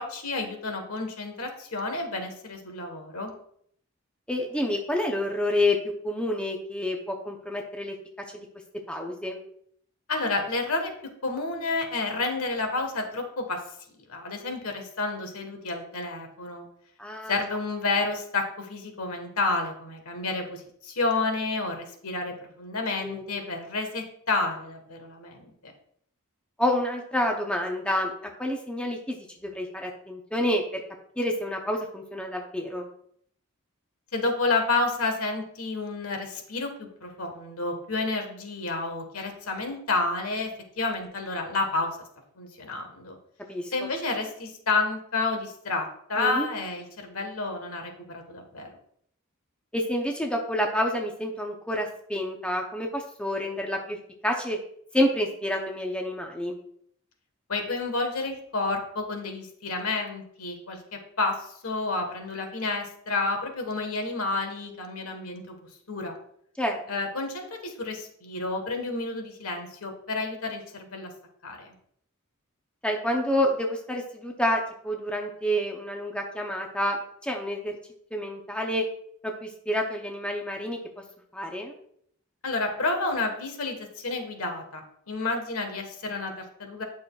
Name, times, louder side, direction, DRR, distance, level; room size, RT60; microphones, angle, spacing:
voice 1, 0.0-3.3 10.1-10.9 11.2-13.6 14.1-16.7 17.3-25.7 34.1-40.5 40.8-41.9 42.4-43.2 43.7-48.7 57.5-65.6 65.9-66.1 66.9-71.1 71.4-71.7 82.4-86.8, left 3 dB, 80° left, 4 dB, 1.4 m, -30 dB
voice 2, 4.3-5.8 6.0-7.9 8.3-8.5 8.9-9.4 17.0-17.4 23.0-23.2 26.6-29.2 29.4-30.8 31.2-32.9 43.5-43.7 46.2-46.5 49.7-54.0 54.2-54.6 54.9-56.6 66.6-67.0 72.8-77.7 78.1-78.8 79.2-80.8 81.3-81.7, left 1 dB, 5° left, 1 dB, 0.7 m, -28 dB
9.2 x 6.2 x 2.4 m, 0.66 s
head